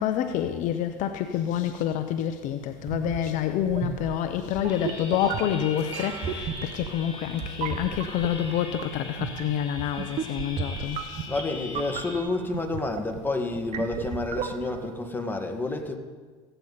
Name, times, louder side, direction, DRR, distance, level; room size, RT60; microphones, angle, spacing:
voice 1, 0.0-11.3, left 10 dB, 60° left, 0.8 m, -28 dB
sound 1, 2.8-14.9, right 7 dB, 45° right, 1.0 m, -36 dB
sound 2, 2.8-2.9 4.1-4.4 4.6-8.9 9.2-9.4, right 6 dB, 85° right, 1.4 m, -46 dB
sound 3, 4.7-12.2, left 3 dB, 35° left, 2.4 m, -41 dB
voice 2, 11.3-16.0, left 2 dB, 15° left, 1.7 m, -29 dB
16.0 x 9.1 x 4.1 m
supercardioid pair, 90°, 15 cm